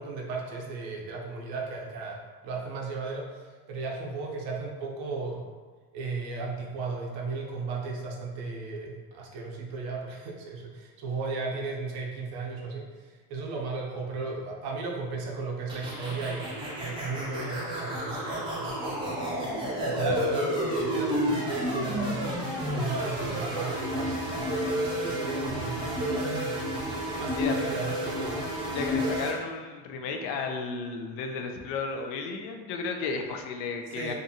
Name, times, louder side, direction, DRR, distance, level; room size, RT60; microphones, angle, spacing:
voice 1, 0.0-5.4 5.9-19.3 19.6-22.2 22.7-26.7 27.1-28.4 28.7-28.9 33.9-34.1, right 4 dB, 70° right, -1 dB, 0.7 m, -35 dB
sound 1, 15.7-29.3, equal, 15° right, 0.4 m, -31 dB
voice 2, 28.7-34.1, left 4 dB, 85° left, 4 dB, 0.5 m, -33 dB
2.6 x 2.4 x 2.7 m, 1.4 s
cardioid pair, 150°, 39 cm